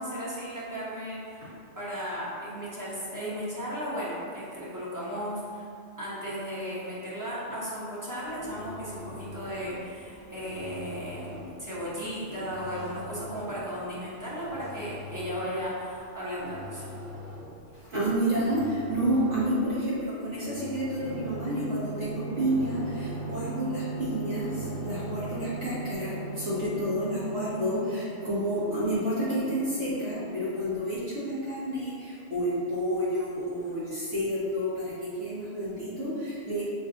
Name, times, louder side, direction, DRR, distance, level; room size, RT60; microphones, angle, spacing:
voice 1, 0.0-1.5 1.8-5.7 6.0-16.9, equal, 15° right, -8 dB, 0.9 m, -35 dB
sound 1, 8.1-25.7, left 2 dB, 55° right, 0.9 m, -44 dB
voice 2, 17.7-36.6, equal, 70° right, -11 dB, 1.9 m, -30 dB
sound 2, 21.0-30.7, right 3 dB, 70° left, 0.8 m, -39 dB
5.4 x 2.5 x 3.8 m, 2.4 s
omnidirectional pair, 1.3 m